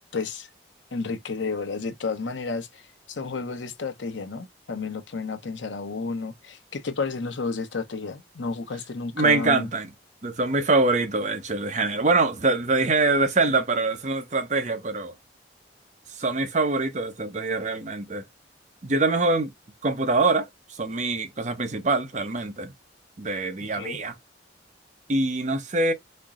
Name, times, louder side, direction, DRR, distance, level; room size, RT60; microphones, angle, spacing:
voice 1, 0.1-0.5 0.9-9.7 23.6-24.0, left 4 dB, 85° left, 0.8 m, -31 dB
voice 2, 9.2-9.9 10.2-15.1 16.2-18.2 18.8-19.5 19.8-20.5 20.8-22.7 23.2-24.1 25.1-25.9, right 3 dB, 40° right, 0.8 m, -24 dB
4.3 x 2.0 x 3.6 m
head